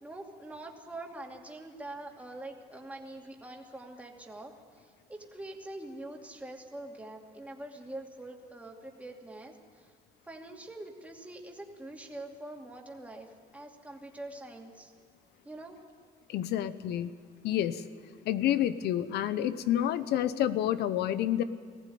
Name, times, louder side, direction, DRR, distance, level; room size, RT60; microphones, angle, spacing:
voice 1, 0.0-9.9 10.3-14.9 15.4-15.8, right 2 dB, 10° right, 0 dB, 2.6 m, -44 dB
voice 2, 16.3-17.1 17.4-17.8 18.2-21.4, left 11 dB, 75° left, 14 dB, 1.0 m, -29 dB
19.5 x 15.0 x 9.4 m, 2.1 s
cardioid pair, 110°, 17 cm